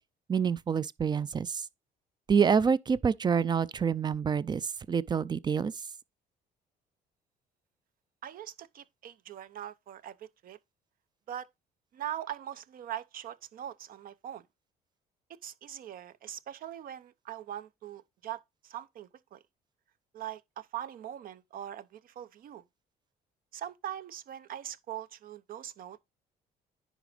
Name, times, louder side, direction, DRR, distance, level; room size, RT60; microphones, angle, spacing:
voice 1, 0.3-1.6 2.3-5.7, right 6 dB, 25° right, 0.4 m, -27 dB
voice 2, 8.2-10.6 11.3-11.5 11.9-14.5 15.4-19.4 20.1-22.6 23.5-26.0, right 11 dB, 60° right, 0.7 m, -41 dB
10.0 x 3.9 x 5.0 m
cardioid pair, 110°, 17 cm